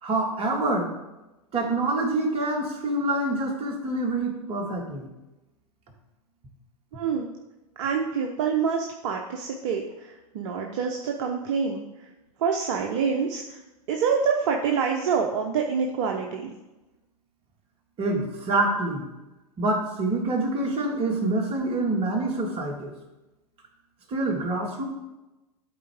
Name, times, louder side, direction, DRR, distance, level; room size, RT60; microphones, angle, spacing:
voice 1, 0.0-0.9 1.5-5.1 18.0-19.0 19.6-22.9 24.1-24.8, right 2 dB, 30° right, 0 dB, 1.8 m, -26 dB
voice 2, 6.9-7.3 7.8-12.1 12.4-13.6 13.9-16.5, right 6 dB, 50° right, 2 dB, 0.8 m, -26 dB
12.0 x 4.4 x 3.6 m, 1.0 s
figure-of-eight pair, 100°, 20 cm